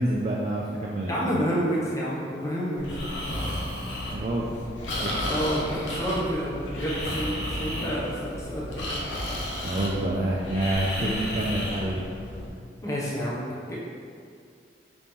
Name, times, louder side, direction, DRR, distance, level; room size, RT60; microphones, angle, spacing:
voice 1, 0.0-1.4 4.1-4.6 5.0-5.3 9.6-12.0, right 1 dB, 35° right, -3 dB, 0.3 m, -28 dB
voice 2, 1.1-3.3 5.2-8.9 12.8-13.8, equal, 15° left, -6 dB, 0.5 m, -29 dB
Breathing, 2.8-12.5, left 1 dB, 85° left, 0.8 m, -33 dB
5.0 x 3.6 x 2.8 m, 2.3 s
head